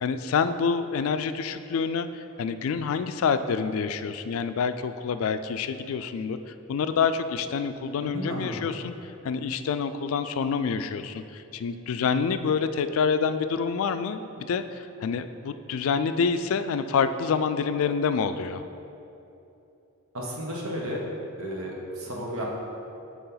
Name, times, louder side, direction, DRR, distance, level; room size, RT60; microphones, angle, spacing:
voice 1, 0.0-18.6, left 6 dB, 70° left, 11 dB, 0.3 m, -27 dB
voice 2, 8.0-8.6 20.1-21.0 21.4-22.4, equal, 70° right, -2 dB, 1.1 m, -33 dB
6.8 x 4.6 x 3.9 m, 2.8 s
head